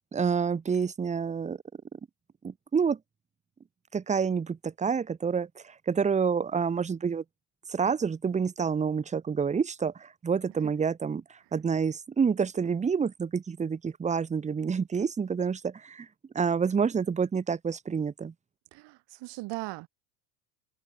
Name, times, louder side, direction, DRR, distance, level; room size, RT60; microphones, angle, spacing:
voice 1, 0.1-1.6 2.4-3.0 3.9-7.2 7.7-11.2 11.5-16.1 16.3-18.3, right 6 dB, 15° right, 0.8 m, -28 dB
voice 2, 18.7-19.9, right 21 dB, 55° right, 2.5 m, -38 dB
hypercardioid pair, 80°, 49 cm